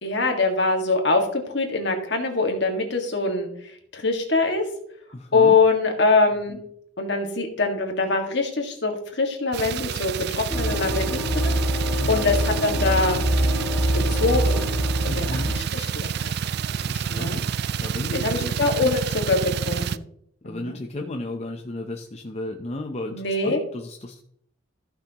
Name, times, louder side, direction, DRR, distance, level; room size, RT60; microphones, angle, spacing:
voice 1, 0.0-3.5 3.9-4.6 5.3-6.6 7.0-11.5 12.1-13.2 13.9-14.6 15.0-16.3 17.1-17.4 18.1-20.0 20.4-20.8 23.1-23.6, left 3 dB, 60° left, 3 dB, 1.8 m, -23 dB
voice 2, 5.1-5.6 12.0-12.3 15.1-15.5 16.7-17.5 17.8-19.0 20.4-24.2, left 2 dB, 35° left, 3 dB, 0.7 m, -34 dB
sound 1, 9.5-20.0, right 7 dB, 55° right, 0.3 m, -29 dB
sound 2, 10.5-15.6, right 1 dB, 5° left, 1.8 m, -24 dB
14.5 x 6.0 x 2.9 m, 0.68 s
head